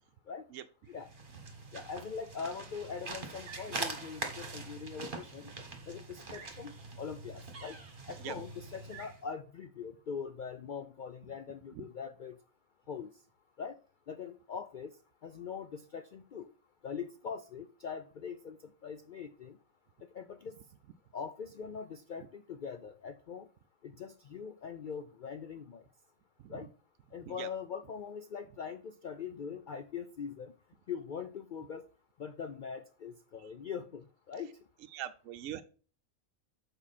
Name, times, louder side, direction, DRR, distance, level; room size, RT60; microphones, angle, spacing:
sound 1, 0.9-9.2, right 3 dB, 40° right, 1.5 m, -43 dB
voice 1, 1.7-5.5 5.9-6.7 7.0-7.8 8.1-12.4 12.9-13.1 13.6-13.8 14.1-15.0 15.2-16.5 16.8-19.6 20.1-20.6 21.1-23.5 23.8-25.8 26.5-26.7 27.1-30.5 30.9-31.9 32.2-34.5, left 6 dB, 65° left, 9 dB, 0.4 m, -42 dB
voice 2, 34.9-35.6, right 11 dB, 75° right, 8 dB, 0.9 m, -42 dB
7.3 x 4.7 x 4.2 m, 0.38 s
omnidirectional pair, 1.4 m